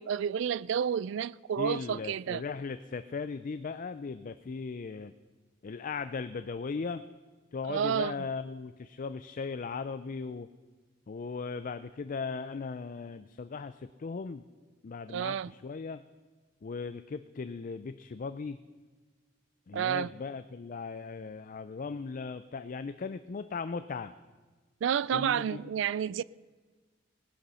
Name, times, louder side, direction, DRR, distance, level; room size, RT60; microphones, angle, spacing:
voice 1, 0.0-2.4 7.6-8.3 15.1-15.5 19.7-20.1 24.8-26.2, right 8 dB, 65° right, 0.3 m, -30 dB
voice 2, 1.6-5.1 5.6-7.0 7.5-10.5 11.1-14.4 14.8-16.0 16.6-18.6 19.7-24.1 25.1-25.6, left 4 dB, 45° left, 0.4 m, -38 dB
18.5 x 10.0 x 5.6 m
head